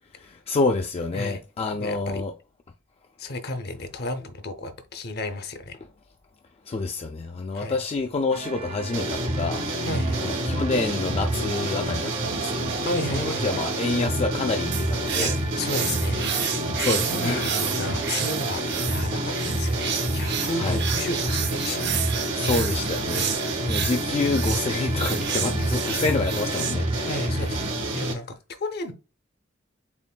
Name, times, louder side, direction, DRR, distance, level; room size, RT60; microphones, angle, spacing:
voice 1, 0.2-2.3 6.7-9.6 10.2-15.3 16.8-17.5 20.6-20.8 22.3-27.3, left 3 dB, 30° left, 0.3 m, -28 dB
voice 2, 1.8-2.2 3.2-5.8 7.5-7.8 9.8-10.4 12.8-13.5 15.2-16.5 17.1-22.0 23.1-23.4 25.6-26.0 27.0-27.7 27.9-28.9, left 2 dB, 55° left, 0.7 m, -33 dB
sound 1, 8.3-27.7, right 4 dB, 30° right, 0.5 m, -37 dB
sound 2, 8.9-28.1, right 1 dB, 80° right, 1.6 m, -28 dB
sound 3, 14.7-26.7, right 8 dB, 60° right, 0.9 m, -31 dB
7.0 x 2.5 x 2.2 m
head